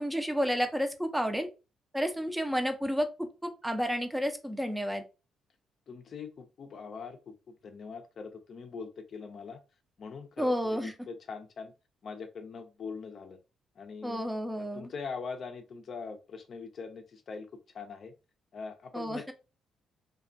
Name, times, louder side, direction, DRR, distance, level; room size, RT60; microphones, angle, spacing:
voice 1, 0.0-1.5 1.9-5.0 10.4-10.9 14.0-14.9 18.9-19.3, equal, 10° right, 0.5 m, -31 dB
voice 2, 5.9-9.6 10.0-11.7 12.0-13.4 13.8-14.3 14.6-17.5 17.7-18.1 18.5-19.3, left 5 dB, 55° left, 0.4 m, -42 dB
2.4 x 2.2 x 2.4 m
supercardioid pair, 60°, 0 cm